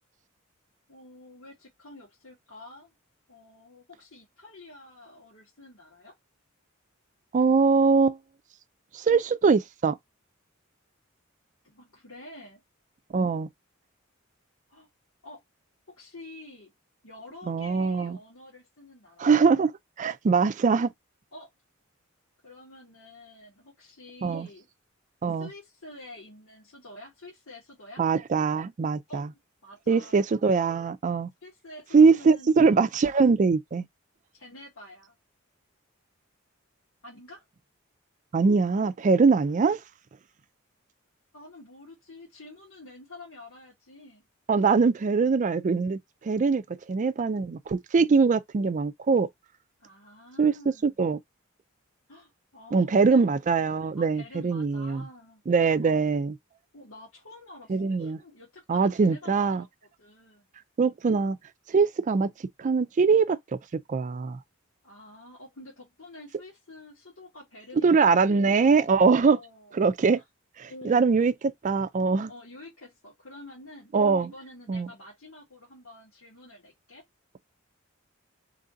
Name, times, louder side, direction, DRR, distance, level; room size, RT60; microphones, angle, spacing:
voice 1, 0.9-2.9 3.3-6.1 11.6-12.6 14.7-14.9 15.2-15.4 15.9-16.7 17.0-19.4 21.3-21.5 22.4-24.6 25.4-28.0 29.1-30.2 31.4-32.5 34.3-35.1 37.0-37.4 41.3-44.2 49.8-51.0 52.1-53.2 54.0-55.4 55.8-56.1 56.7-59.7 60.0-60.6 64.8-68.9 69.1-69.7 70.1-70.2 70.7-71.1 72.2-73.9 74.2-77.0, left 2 dB, 85° left, 1.7 m, -48 dB
voice 2, 7.3-8.2 8.9-10.0 13.1-13.5 17.5-18.2 19.2-19.7 20.0-20.9 24.2-24.5 25.2-25.5 28.0-29.3 29.9-31.3 31.9-33.9 38.3-39.8 44.5-49.3 50.4-50.5 50.8-51.2 52.7-55.0 55.5-56.3 57.7-58.2 58.7-59.6 60.8-61.4 61.7-62.3 62.6-63.6 63.9-64.4 67.8-69.4 69.7-70.2 70.6-71.3 71.6-72.3 73.9-74.3 74.7-74.9, right 4 dB, 35° right, 0.4 m, -22 dB
3.2 x 2.6 x 3.7 m
head